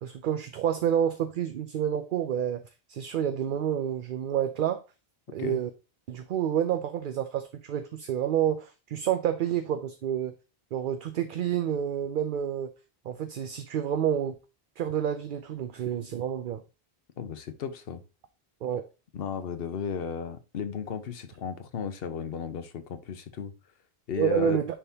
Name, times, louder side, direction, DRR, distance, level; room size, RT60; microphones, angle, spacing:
voice 1, 0.0-2.6 2.9-4.8 5.3-5.7 6.1-10.3 10.7-12.7 13.1-14.4 14.8-16.6 18.6-18.8 24.2-24.7, right 9 dB, 60° right, 0.6 m, -29 dB
voice 2, 17.2-18.0 19.1-23.5 24.1-24.6, left 6 dB, 65° left, 1.0 m, -34 dB
9.9 x 3.6 x 2.8 m
omnidirectional pair, 1.1 m